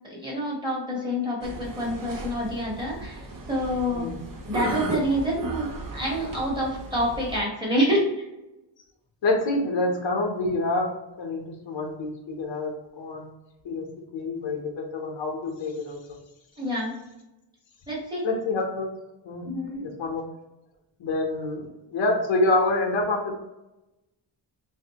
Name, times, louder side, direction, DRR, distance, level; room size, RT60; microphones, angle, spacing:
voice 1, 0.1-3.2 3.5-4.1 4.5-8.1 16.6-17.0 17.9-18.2 19.4-19.8, equal, 10° right, -5 dB, 1.1 m, -27 dB
sound 1, 1.4-7.4, right 2 dB, 50° right, 0.6 m, -35 dB
voice 2, 9.2-10.9 11.2-13.3 13.6-13.9 14.1-16.0 18.2-18.9 19.2-19.5 19.7-20.2 21.0-23.3, left 2 dB, 85° left, 1 dB, 0.9 m, -27 dB
3.3 x 2.6 x 2.8 m, 0.96 s
wide cardioid pair, 165°, 44 cm